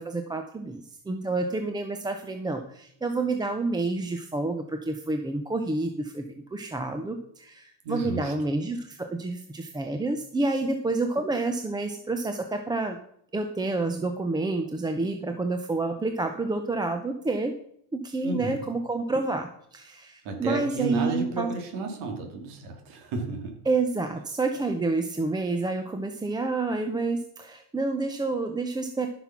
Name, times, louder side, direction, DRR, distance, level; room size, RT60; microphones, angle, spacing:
voice 1, 0.0-13.0 13.3-17.5 17.9-21.5 23.7-29.1, right 3 dB, 10° right, 6 dB, 0.5 m, -29 dB
voice 2, 7.8-8.3 18.2-18.6 20.2-23.6, right 3 dB, 75° right, 3 dB, 2.6 m, -32 dB
14.0 x 6.0 x 5.9 m, 0.71 s
cardioid pair, 150°, 48 cm